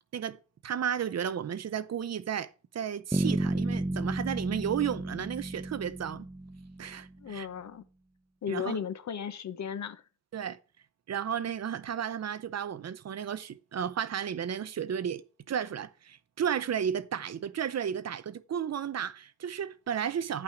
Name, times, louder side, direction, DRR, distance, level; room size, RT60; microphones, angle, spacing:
voice 1, 0.1-2.5 2.7-6.3 6.8-7.5 8.5-8.8 10.3-10.6 11.1-20.4, right 8 dB, 55° right, 0.6 m, -33 dB
Bass guitar, 3.1-7.0, right 1 dB, 10° right, 0.7 m, -32 dB
voice 2, 7.2-7.8 8.4-10.0, left 8 dB, 60° left, 0.9 m, -35 dB
10.0 x 5.9 x 5.0 m
cardioid pair, 85°, 31 cm